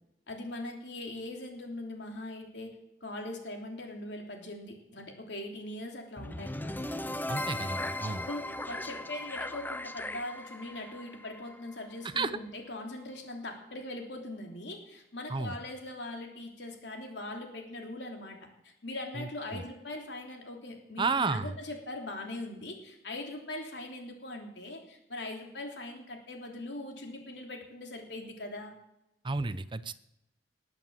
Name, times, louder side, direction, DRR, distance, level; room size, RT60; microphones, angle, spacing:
voice 1, 0.3-2.7 3.0-6.8 8.2-18.4 18.6-28.7, left 1 dB, 70° left, 2 dB, 3.3 m, -41 dB
sound 1, 6.2-12.2, left 1 dB, 10° left, 0.7 m, -38 dB
voice 2, 7.3-8.3 12.0-12.4 15.3-15.6 19.1-19.6 21.0-21.5 29.2-29.9, right 4 dB, 30° right, 15 dB, 0.7 m, -32 dB
20.0 x 8.1 x 7.4 m, 0.88 s
head